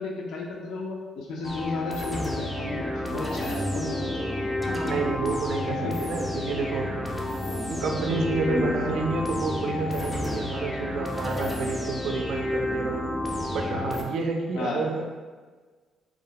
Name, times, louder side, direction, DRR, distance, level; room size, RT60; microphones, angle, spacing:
voice 1, 0.0-4.0 4.4-4.8 5.7-6.0 8.5-8.7 14.5-14.8, left 2 dB, 80° left, -2 dB, 0.5 m, -33 dB
sound 1, 1.4-14.0, left 1 dB, 20° left, 0.4 m, -30 dB
sound 2, 3.3-13.2 13.5-13.6, equal, 30° right, 0.6 m, -41 dB
voice 2, 4.8-7.2 7.7-13.1 13.5-15.0, right 4 dB, 75° right, 2 dB, 0.3 m, -29 dB
2.4 x 2.1 x 2.8 m, 1.4 s
cardioid pair, 90°, 0 cm